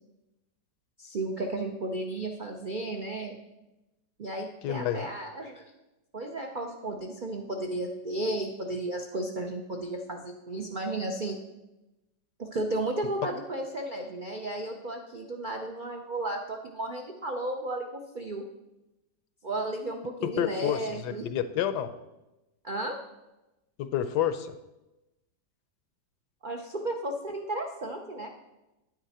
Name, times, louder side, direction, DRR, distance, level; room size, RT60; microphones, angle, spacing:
voice 1, 1.0-3.4 4.2-5.6 6.1-11.4 12.4-18.4 19.4-21.3 22.6-22.9 26.4-28.3, right 2 dB, 80° right, 2 dB, 0.4 m, -34 dB
voice 2, 4.6-5.1 20.2-21.9 23.8-24.5, left 10 dB, 75° left, 11 dB, 1.1 m, -29 dB
9.2 x 9.1 x 4.2 m, 1.0 s
omnidirectional pair, 1.9 m